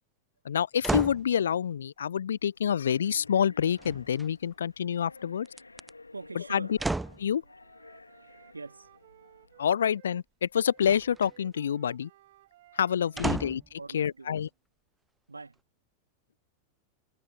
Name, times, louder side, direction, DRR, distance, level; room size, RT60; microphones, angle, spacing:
voice 1, 0.4-5.5 6.5-6.8 7.2-7.4 9.6-12.1 12.8-13.6 13.9-14.5, left 8 dB, 65° left, 0.6 m, -27 dB
sound 1, 0.8-1.3 3.8-4.5 5.4-5.9 6.8-7.3 10.8-11.3 13.2-13.7 14.4-14.5, right 2 dB, 5° right, 0.4 m, -33 dB
sound 2, 2.2-9.8, left 3 dB, 80° left, 3.7 m, -54 dB
voice 2, 6.1-6.8 8.5-8.9 13.1-13.4 13.8-14.4 15.3-15.6, right 3 dB, 80° right, 2.5 m, -43 dB
Wind instrument woodwind instrument, 7.1-10.2 10.6-14.6, right 16 dB, 55° right, 4.8 m, -60 dB
figure-of-eight pair, 90°, 0 cm